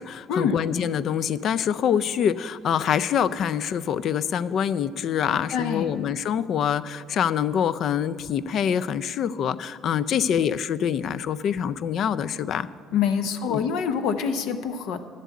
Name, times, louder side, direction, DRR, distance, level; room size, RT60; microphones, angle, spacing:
voice 1, 0.0-12.7 13.4-13.7, left 8 dB, 55° left, 15 dB, 0.4 m, -25 dB
voice 2, 5.5-5.9 12.9-15.0, left 7 dB, 80° left, 9 dB, 0.7 m, -25 dB
10.5 x 7.5 x 8.3 m, 2.1 s
cardioid pair, 115°, 0 cm